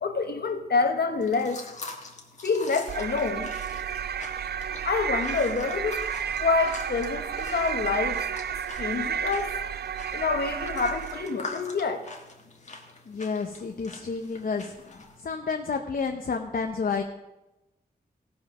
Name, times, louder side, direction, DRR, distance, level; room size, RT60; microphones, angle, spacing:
voice 1, 0.0-1.6 2.4-3.5 4.8-6.0 6.4-8.2 8.8-9.5 10.1-12.0, left 4 dB, 75° left, 5 dB, 1.2 m, -27 dB
sound 1, 1.2-15.2, left 3 dB, 45° left, 1.6 m, -44 dB
sound 2, 2.9-11.5, right 8 dB, 75° right, 0.4 m, -32 dB
voice 2, 13.1-14.8 15.2-17.0, left 5 dB, 60° left, 4 dB, 0.8 m, -30 dB
16.5 x 5.6 x 6.1 m, 0.98 s
wide cardioid pair, 120°, 17 cm